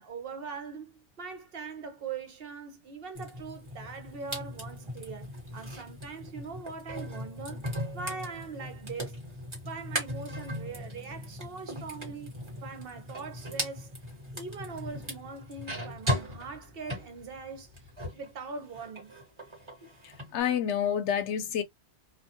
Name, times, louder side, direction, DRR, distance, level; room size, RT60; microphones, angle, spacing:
voice 1, 0.0-7.7 7.9-9.2 9.6-13.9 14.3-19.2, right 5 dB, 60° right, 0.8 m, -42 dB
sound 1, 3.1-18.3 18.6-20.3, equal, 25° right, 1.1 m, -38 dB
voice 2, 20.3-21.6, left 8 dB, 85° left, 0.9 m, -28 dB
2.4 x 2.2 x 2.7 m
omnidirectional pair, 1.2 m